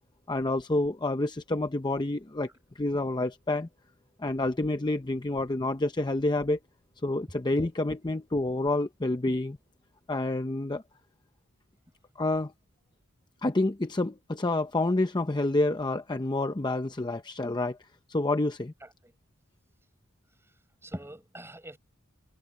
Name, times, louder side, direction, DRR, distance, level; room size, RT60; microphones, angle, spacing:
voice 1, 0.3-2.5 2.8-3.7 4.2-6.6 7.0-9.6 10.1-10.8 12.2-12.5 13.4-17.8 18.1-18.7, left 2 dB, 20° left, 0.6 m, -28 dB
voice 2, 18.8-19.1 20.8-21.8, right 1 dB, 10° right, 6.7 m, -43 dB
head